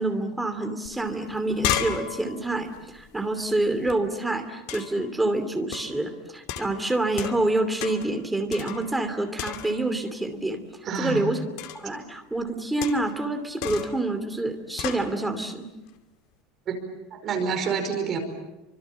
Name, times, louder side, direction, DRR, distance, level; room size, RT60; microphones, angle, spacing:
voice 1, 0.0-10.6 11.0-11.4 11.7-15.7, right 2 dB, 5° right, 6 dB, 2.7 m, -27 dB
sound 1, 0.9-1.0 1.2-4.0 4.7-5.1 5.7-6.0 6.5-7.5 7.8-8.2 8.5-9.1 9.4-10.0 11.6-11.9 12.8-13.2 13.6-14.0 14.8-15.1, left 11 dB, 55° left, 2.5 m, -33 dB
voice 2, 10.8-11.3 16.7-16.8 17.1-18.2, right 5 dB, 30° right, 4 dB, 5.1 m, -27 dB
29.5 x 25.5 x 7.5 m, 1.1 s
cardioid pair, 170°, 0 cm